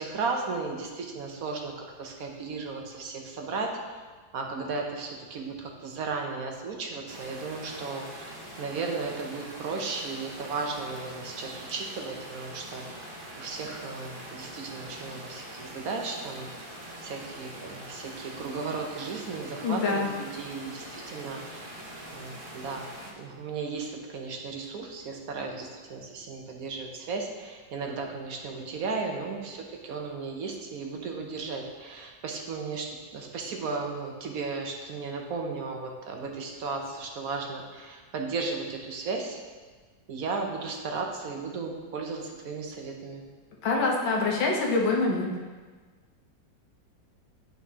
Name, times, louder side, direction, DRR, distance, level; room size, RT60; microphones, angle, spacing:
voice 1, 0.0-4.0 4.3-13.1 13.4-16.5 17.0-21.8 22.1-22.8 23.2-39.4 40.1-43.2, right 4 dB, 60° right, 1 dB, 1.1 m, -35 dB
sound 1, 7.1-23.1, right 1 dB, 35° right, 0.9 m, -43 dB
voice 2, 19.6-20.1 43.6-45.3, left 3 dB, 90° left, -1 dB, 1.8 m, -25 dB
8.8 x 5.9 x 2.8 m, 1.4 s
omnidirectional pair, 2.0 m